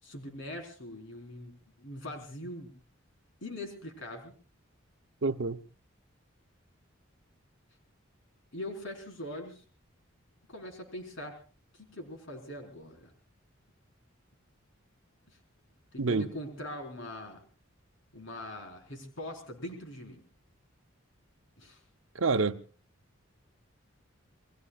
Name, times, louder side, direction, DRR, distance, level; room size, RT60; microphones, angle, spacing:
voice 1, 0.0-2.7 3.4-4.3 8.5-9.6 10.5-11.4 11.7-13.1 15.3-15.4 15.9-17.4 18.1-20.2 21.6-21.8, left 1 dB, 65° left, 4.4 m, -42 dB
voice 2, 5.2-5.6 16.0-16.3 22.1-22.6, right 4 dB, 75° right, 0.8 m, -27 dB
29.0 x 21.0 x 2.4 m
head